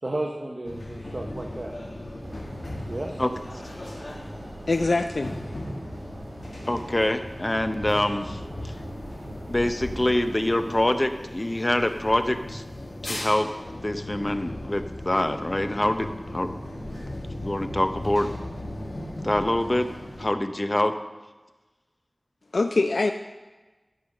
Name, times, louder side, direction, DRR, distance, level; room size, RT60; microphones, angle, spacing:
voice 1, 0.0-1.7 2.9-3.2, right 1 dB, 45° right, 0 dB, 0.9 m, -33 dB
sound 1, 0.6-20.3, left 1 dB, 65° left, 2.0 m, -37 dB
sound 2, 2.2-10.8, right 1 dB, 80° right, 3.0 m, -41 dB
voice 2, 4.7-5.3 22.5-23.1, left 3 dB, 85° left, 7 dB, 0.4 m, -23 dB
voice 3, 6.7-8.7 9.5-12.6 13.0-16.5 17.4-18.3 19.2-19.9 20.2-20.9, left 1 dB, 30° left, 9 dB, 0.6 m, -25 dB
11.5 x 5.5 x 6.5 m, 1.2 s
wide cardioid pair, 60°, 0 cm